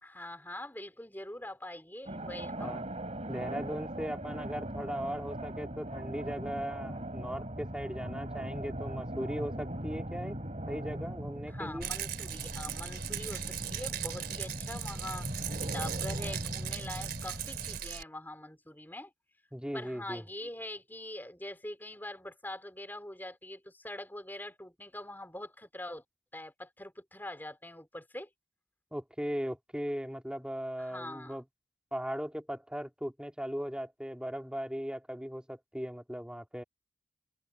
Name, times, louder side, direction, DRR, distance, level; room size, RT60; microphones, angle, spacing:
voice 1, 0.0-2.8 11.5-15.3 15.6-19.1 19.7-26.0 26.3-28.3 30.8-31.4, left 1 dB, 10° left, 4.7 m, -43 dB
sound 1, 2.1-17.8, right 1 dB, 35° right, 4.1 m, -39 dB
voice 2, 3.3-10.4 10.7-11.9 19.5-20.2 28.9-31.4 31.9-36.6, equal, 5° right, 2.2 m, -38 dB
Rattle, 11.8-18.0, right 10 dB, 55° right, 4.5 m, -39 dB
head